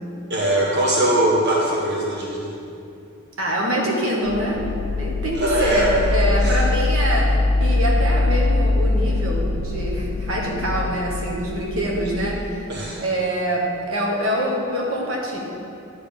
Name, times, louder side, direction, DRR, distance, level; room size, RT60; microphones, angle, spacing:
voice 1, 0.3-2.5 5.3-5.9 6.4-6.6 12.7-13.0, right 1 dB, 55° right, -5 dB, 1.2 m, -21 dB
voice 2, 3.4-4.6 5.0-12.7 13.0-15.4, equal, 70° right, -2 dB, 1.4 m, -24 dB
sound 1, 4.3-13.0, left 2 dB, 65° left, 0.7 m, -22 dB
10.5 x 3.5 x 6.9 m, 2.6 s
head